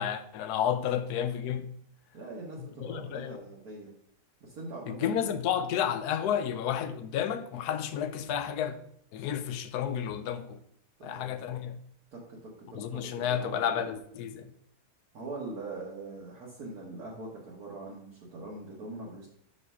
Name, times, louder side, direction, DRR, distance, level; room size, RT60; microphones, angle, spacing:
voice 1, 0.0-1.7 2.6-3.4 4.9-8.8 9.1-10.6 11.0-11.8 12.7-14.5, left 9 dB, 75° left, 1.1 m, -31 dB
voice 2, 2.1-3.9 4.4-5.3 11.0-11.3 12.1-13.9 15.1-19.3, right 2 dB, 60° right, 1.6 m, -42 dB
6.8 x 3.2 x 5.5 m
omnidirectional pair, 1.8 m